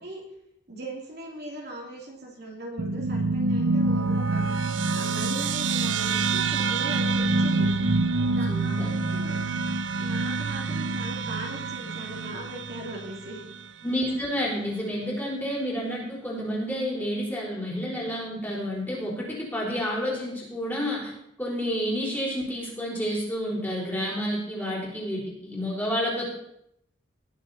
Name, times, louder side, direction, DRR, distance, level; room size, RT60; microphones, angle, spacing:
voice 1, 0.7-4.4 4.9-7.7 8.2-9.3 10.0-13.4, right 1 dB, 55° right, -1 dB, 2.7 m, -39 dB
sound 1, 2.8-13.6, right 3 dB, 70° right, 0.7 m, -26 dB
voice 2, 8.5-8.9 13.8-21.1 21.4-26.3, equal, 10° left, -5 dB, 4.2 m, -30 dB
19.5 x 7.0 x 4.2 m, 0.78 s
head